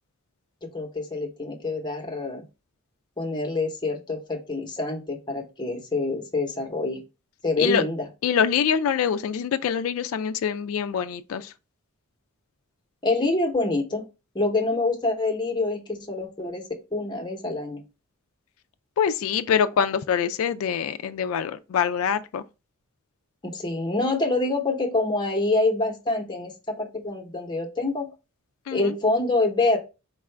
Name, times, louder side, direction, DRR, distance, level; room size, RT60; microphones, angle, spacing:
voice 1, 0.6-2.4 3.2-7.0 7.4-8.0 13.0-14.0 14.3-16.6 16.9-17.8 23.4-28.1 28.7-29.8, left 2 dB, 20° left, 0.9 m, -26 dB
voice 2, 8.2-11.5 19.0-22.4 28.7-28.9, left 7 dB, 75° left, 0.3 m, -25 dB
4.6 x 2.4 x 3.3 m
head